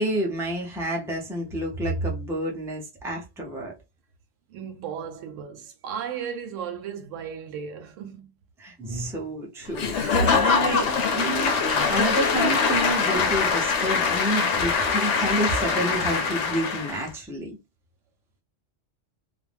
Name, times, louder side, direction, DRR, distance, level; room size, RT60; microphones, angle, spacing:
voice 1, 0.0-3.7 8.6-17.6, right 1 dB, 5° right, 0.4 m, -29 dB
voice 2, 4.5-8.3 10.1-10.3, right 6 dB, 90° right, 1.0 m, -33 dB
Applause / Crowd, 9.7-17.1, left 5 dB, 70° left, 0.9 m, -23 dB
2.5 x 2.0 x 3.3 m
omnidirectional pair, 1.3 m